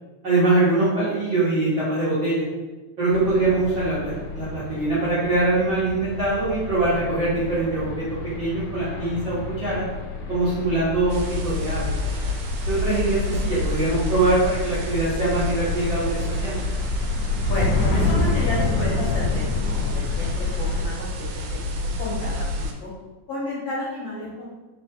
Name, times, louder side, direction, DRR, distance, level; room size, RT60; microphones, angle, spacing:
voice 1, 0.2-2.4 3.0-8.1 8.4-9.9 10.3-11.9 12.7-16.6, right 2 dB, 60° right, -12 dB, 1.3 m, -23 dB
sound 1, 3.1-20.9, left 3 dB, 85° left, 2.2 m, -29 dB
sound 2, 11.1-22.7, left 2 dB, 80° right, 1.9 m, -29 dB
voice 2, 17.5-21.3 21.7-22.9 23.3-24.5, left 1 dB, 70° left, -7 dB, 1.6 m, -31 dB
4.5 x 3.0 x 2.8 m, 1.2 s
omnidirectional pair, 3.5 m